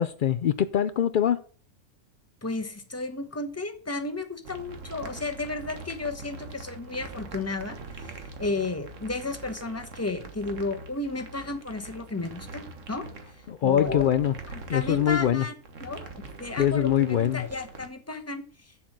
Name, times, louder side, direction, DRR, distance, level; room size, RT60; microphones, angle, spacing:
voice 1, 0.0-1.4 13.5-14.3 14.7-15.5 16.6-17.4, left 10 dB, 85° left, 0.4 m, -23 dB
voice 2, 2.4-12.6 12.9-13.1 13.6-14.1 14.5-15.5 15.8-16.1 16.4-18.4, left 3 dB, 10° left, 1.0 m, -33 dB
sound 1, 4.4-17.9, right 3 dB, 60° right, 1.7 m, -43 dB
7.4 x 7.3 x 6.2 m
omnidirectional pair, 1.5 m